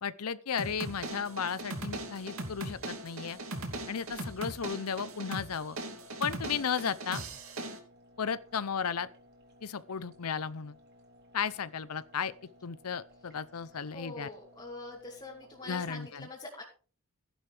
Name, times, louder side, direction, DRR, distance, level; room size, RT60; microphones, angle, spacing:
voice 1, 0.0-3.4 3.9-5.8 6.2-7.2 8.2-9.1 9.6-10.8 11.3-12.3 12.6-14.3 15.6-16.3, left 6 dB, 85° left, 0.7 m, -34 dB
sound 1, 0.6-16.1, equal, 45° right, 3.6 m, -59 dB
sound 2, 0.6-7.8, right 2 dB, 70° right, 2.8 m, -39 dB
voice 2, 13.7-16.6, left 2 dB, 20° left, 2.8 m, -45 dB
15.5 x 11.5 x 3.4 m
head